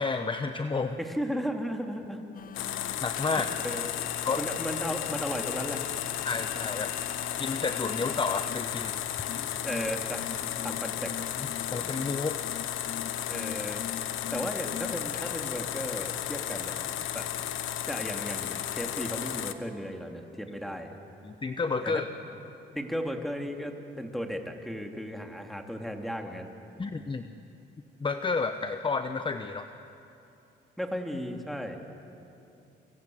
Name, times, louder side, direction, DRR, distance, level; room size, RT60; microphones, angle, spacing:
voice 1, 0.0-1.0 3.0-3.5 4.2-4.4 6.2-7.0 7.4-9.1 11.4-12.4 21.2-22.1 26.8-27.2 28.0-29.6, left 4 dB, 25° left, 8 dB, 1.0 m, -31 dB
voice 2, 1.0-2.2 3.6-3.9 4.4-5.8 9.3-10.3 10.6-11.2 13.3-13.9 14.3-16.8 17.1-17.3 17.9-20.9 21.8-22.0 22.7-26.5 30.8-31.8, equal, ahead, 3 dB, 2.9 m, -35 dB
sound 1, 2.3-15.3, left 8 dB, 45° left, 0.7 m, -43 dB
sound 2, 2.5-19.5, left 11 dB, 85° left, 1.2 m, -34 dB
28.0 x 26.0 x 7.9 m, 2.8 s
cardioid pair, 90°, 20 cm